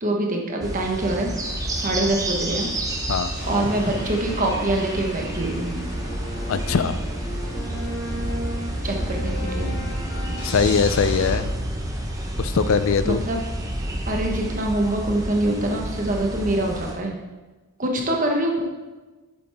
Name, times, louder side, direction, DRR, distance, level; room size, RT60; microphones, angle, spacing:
voice 1, 0.0-1.3 1.7-2.7 3.5-5.7 8.8-9.7 13.0-13.4 14.1-17.2 17.8-18.6, right 1 dB, 35° right, 1 dB, 1.2 m, -24 dB
sound 1, 0.6-16.9, right 1 dB, 15° right, 0.8 m, -29 dB
sound 2, 3.3-11.4, equal, 45° left, 2.6 m, -34 dB
voice 2, 6.5-7.0 10.4-11.5 12.4-13.2, left 5 dB, 65° left, 12 dB, 0.4 m, -21 dB
7.8 x 7.6 x 3.5 m, 1.2 s
head